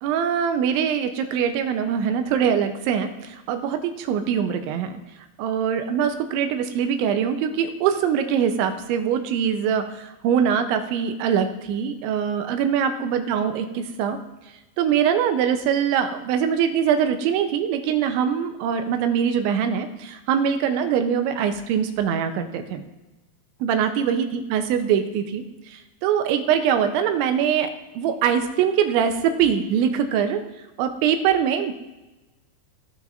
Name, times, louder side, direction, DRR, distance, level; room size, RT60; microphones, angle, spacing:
voice 1, 0.0-4.9 5.4-14.2 14.8-22.8 23.6-25.4 25.7-27.7 28.0-30.4 30.8-31.7, right 8 dB, 85° right, 7 dB, 3.1 m, -23 dB
18.5 x 6.4 x 2.5 m, 1.0 s
omnidirectional pair, 5.4 m